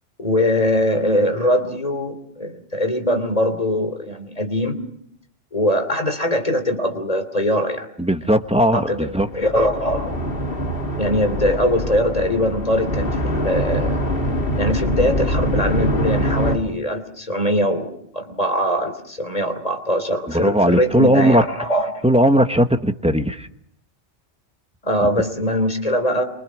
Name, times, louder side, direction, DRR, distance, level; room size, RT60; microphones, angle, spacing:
voice 1, 0.2-4.8 5.5-7.9 8.7-10.1 11.0-14.0 14.6-22.0 24.8-26.2, left 1 dB, 35° left, 7 dB, 3.3 m, -22 dB
voice 2, 8.0-9.3 20.3-21.4 22.0-23.5, equal, 5° right, 8 dB, 1.0 m, -17 dB
sound 1, 9.0-16.6, equal, 55° left, 2.3 m, -24 dB
27.5 x 24.5 x 6.3 m, 0.68 s
omnidirectional pair, 1.2 m